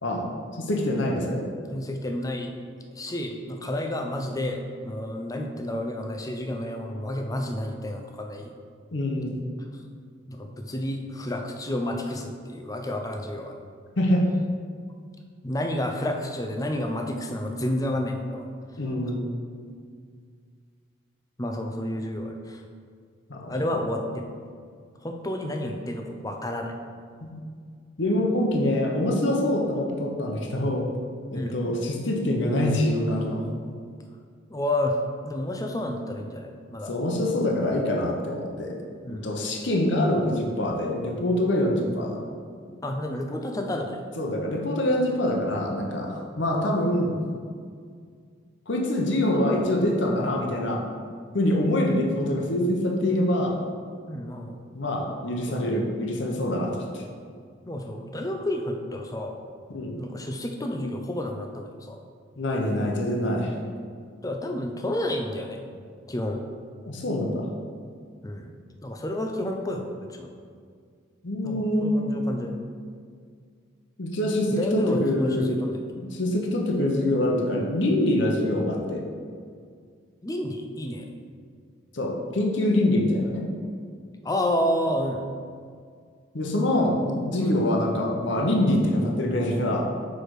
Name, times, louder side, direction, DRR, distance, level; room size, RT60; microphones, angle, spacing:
voice 1, 0.5-1.4 8.9-9.4 14.0-14.3 18.8-19.2 23.3-23.8 27.2-27.4 28.0-30.9 31.3-33.4 36.9-38.8 39.1-42.2 44.2-47.2 48.7-50.8 51.3-53.5 54.7-57.0 59.7-60.0 62.4-63.5 66.9-67.5 71.2-72.1 74.0-75.5 76.0-79.0 81.9-83.5 86.3-89.9, left 1 dB, 60° left, 0 dB, 0.9 m, -25 dB
voice 2, 1.6-2.5 2.9-8.5 10.3-13.6 15.4-18.5 21.4-22.6 23.5-24.3 25.0-26.7 31.3-31.5 34.5-35.0 35.2-36.9 39.0-39.3 42.8-44.0 54.1-54.6 55.5-55.6 57.7-59.4 60.0-62.0 64.2-65.6 66.1-66.4 68.2-68.5 68.8-70.3 71.4-72.5 74.5-75.8 80.2-81.1 84.2-85.3 87.4-87.5, left 1 dB, 15° left, 3 dB, 0.5 m, -30 dB
6.4 x 4.7 x 4.9 m, 2.1 s
head